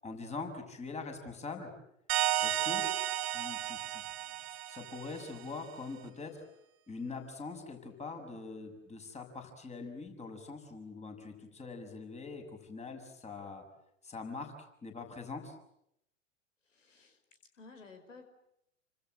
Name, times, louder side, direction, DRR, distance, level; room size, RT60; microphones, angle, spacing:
voice 1, 0.0-1.7 2.4-2.8 3.3-4.0 4.4-6.4 6.9-13.6 14.0-14.5 14.8-15.5, left 4 dB, 15° left, 5 dB, 6.5 m, -43 dB
sound 1, 2.1-5.5, right 13 dB, 50° right, 2.3 m, -33 dB
voice 2, 16.6-17.2 17.5-18.2, left 4 dB, 75° left, 8 dB, 5.2 m, -54 dB
29.5 x 26.0 x 7.8 m, 0.77 s
figure-of-eight pair, 90°, 38 cm